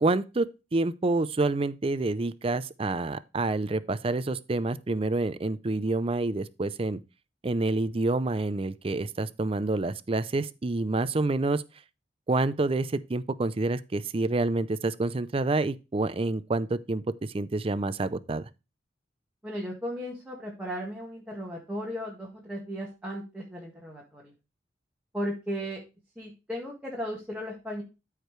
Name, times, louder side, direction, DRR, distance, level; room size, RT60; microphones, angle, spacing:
voice 1, 0.0-7.0 7.4-11.6 12.3-18.4, right 2 dB, 30° right, 0.5 m, -28 dB
voice 2, 19.4-24.3 25.1-25.8 26.1-27.8, equal, 5° right, 1.6 m, -36 dB
13.5 x 5.0 x 3.2 m
head